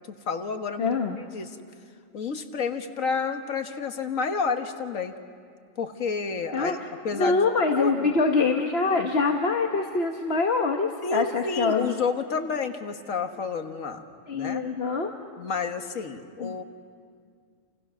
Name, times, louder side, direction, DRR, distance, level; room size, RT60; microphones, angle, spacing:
voice 1, 0.1-1.0 1.3-1.6 2.1-5.1 5.8-6.8 7.0-7.4 7.7-8.1 11.0-14.0 14.3-14.6 15.4-16.6, left 5 dB, 85° left, 6 dB, 1.8 m, -30 dB
voice 2, 0.8-1.2 6.5-6.8 7.1-11.9 14.3-15.1 16.4-16.6, left 4 dB, 55° left, 3 dB, 1.4 m, -24 dB
29.0 x 29.0 x 6.2 m, 2.1 s
omnidirectional pair, 1.3 m